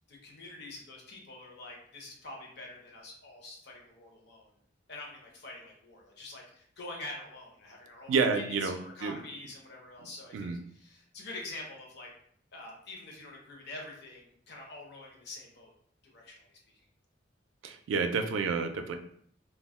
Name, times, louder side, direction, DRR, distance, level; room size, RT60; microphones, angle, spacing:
voice 1, 0.1-4.5 4.9-12.1 12.5-15.7 16.0-16.5, left 2 dB, 60° left, -1 dB, 0.7 m, -46 dB
voice 2, 8.1-9.2 10.3-10.6 17.6-19.0, right 5 dB, 80° right, 6 dB, 0.3 m, -29 dB
2.3 x 2.1 x 3.5 m, 0.62 s
head